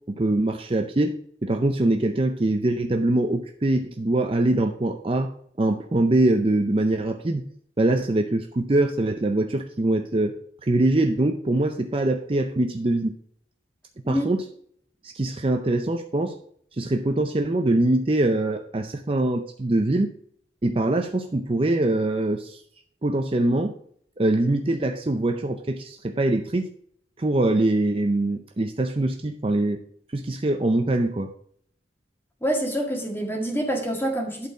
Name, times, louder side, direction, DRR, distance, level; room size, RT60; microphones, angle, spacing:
voice 1, 0.1-1.1 1.4-5.3 5.6-7.4 7.8-10.3 10.6-13.1 14.1-14.4 15.0-16.4 16.8-20.1 20.6-22.6 23.0-23.7 24.2-26.7 27.2-29.8 30.1-31.3, right 2 dB, 30° right, 5 dB, 0.5 m, -23 dB
voice 2, 32.4-34.5, right 1 dB, 10° left, 1 dB, 1.7 m, -26 dB
11.0 x 4.4 x 4.8 m, 0.63 s
head